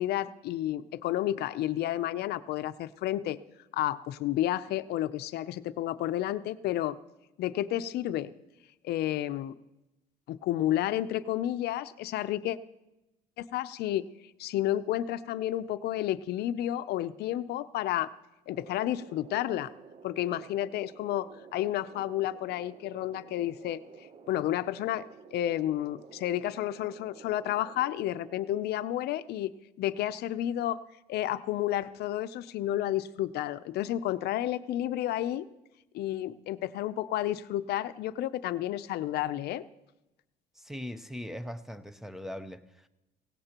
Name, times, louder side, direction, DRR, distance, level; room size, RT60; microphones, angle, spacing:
voice 1, 0.0-3.4 3.7-7.0 7.4-8.3 8.8-9.5 10.3-12.6 13.4-14.1 14.4-18.1 18.5-19.7 20.0-23.8 24.3-25.0 25.3-29.5 29.8-30.8 31.1-35.4 35.9-39.6, left 13 dB, 75° left, 13 dB, 0.6 m, -31 dB
sound 1, 18.5-28.6, right 6 dB, 40° right, 0.8 m, -52 dB
voice 2, 40.6-42.9, left 1 dB, ahead, 12 dB, 0.7 m, -40 dB
17.0 x 17.0 x 3.0 m, 0.97 s
cardioid pair, 110°, 17 cm